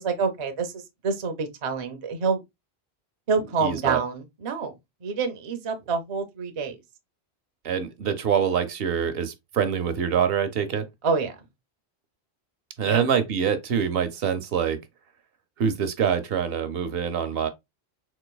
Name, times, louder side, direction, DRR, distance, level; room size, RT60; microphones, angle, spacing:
voice 1, 0.0-2.4 3.3-4.7 5.0-6.8 11.0-11.4 12.8-13.0, right 5 dB, 45° right, 0.4 m, -27 dB
voice 2, 3.6-4.0 7.6-10.8 12.8-14.8 15.6-17.5, right 7 dB, 70° right, 0.8 m, -25 dB
3.9 x 2.5 x 2.2 m
omnidirectional pair, 1.1 m